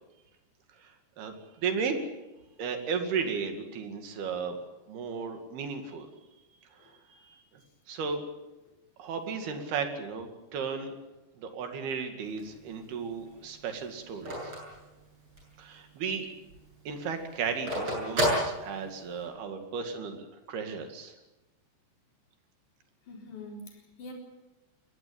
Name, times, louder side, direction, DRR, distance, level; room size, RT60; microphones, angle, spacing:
voice 1, 0.8-2.0 2.6-4.6 4.9-6.1 6.7-7.4 7.9-8.2 9.0-10.9 11.4-14.5 15.6-16.3 16.9-21.2, right 5 dB, 60° right, 6 dB, 4.0 m, -35 dB
Telephone, 12.2-15.6 16.0-16.1 16.4-19.3, equal, 25° right, 8.7 m, -32 dB
voice 2, 23.1-24.1, left 2 dB, 45° left, 1 dB, 5.3 m, -44 dB
22.0 x 18.5 x 8.8 m, 1.0 s
omnidirectional pair, 5.2 m